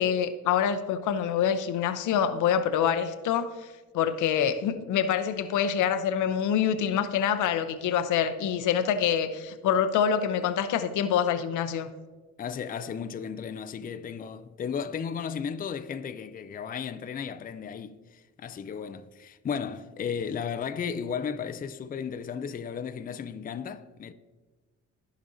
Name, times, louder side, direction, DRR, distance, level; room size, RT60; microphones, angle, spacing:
voice 1, 0.0-3.5 3.9-11.9, left 8 dB, 80° left, 0.7 m, -26 dB
voice 2, 12.4-24.1, left 7 dB, 30° left, 0.4 m, -34 dB
14.0 x 5.1 x 2.7 m
cardioid pair, 90°, 30 cm